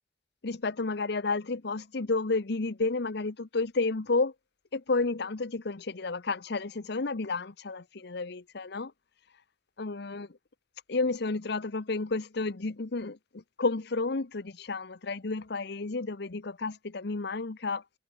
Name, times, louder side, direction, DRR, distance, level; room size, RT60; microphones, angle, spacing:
voice 1, 0.4-4.3 4.7-8.9 9.8-10.3 10.9-17.8, left 3 dB, 65° left, 0.9 m, -31 dB
head